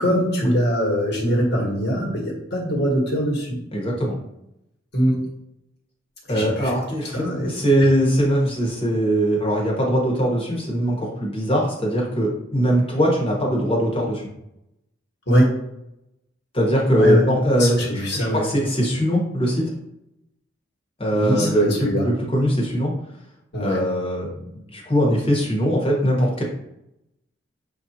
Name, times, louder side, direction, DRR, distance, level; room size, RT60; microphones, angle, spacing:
voice 1, 0.0-3.6 4.9-5.2 6.3-6.7 7.1-7.5 15.3-15.5 17.0-17.2 17.6-18.4 21.1-22.1 23.5-23.8, equal, 55° left, -2 dB, 1.3 m, -22 dB
voice 2, 3.7-4.1 6.3-14.2 16.5-19.6 21.0-21.7 22.0-22.9 23.6-26.4, equal, 25° left, -3 dB, 1.1 m, -21 dB
6.7 x 2.5 x 2.8 m, 0.83 s
head